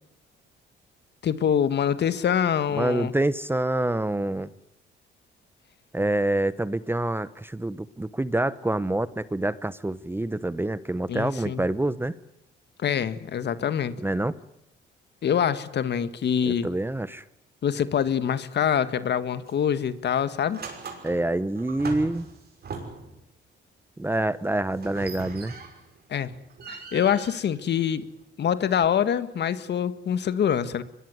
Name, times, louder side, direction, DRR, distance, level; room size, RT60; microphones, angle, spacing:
voice 1, 1.2-3.1 11.1-11.6 12.8-13.9 15.2-16.7 17.6-20.6 26.1-26.3 26.7-28.1 28.4-30.8, left 8 dB, 60° left, 13 dB, 1.7 m, -25 dB
voice 2, 2.7-4.5 5.9-12.1 14.0-14.3 16.5-17.2 21.0-22.3 24.0-25.5, right 1 dB, 10° right, 16 dB, 0.9 m, -26 dB
sound 1, 19.5-19.7 20.1-23.2 24.8-26.0 26.3-28.2, right 4 dB, 55° right, 6.1 m, -40 dB
24.0 x 21.5 x 9.6 m, 0.78 s
cardioid pair, 90°, 20 cm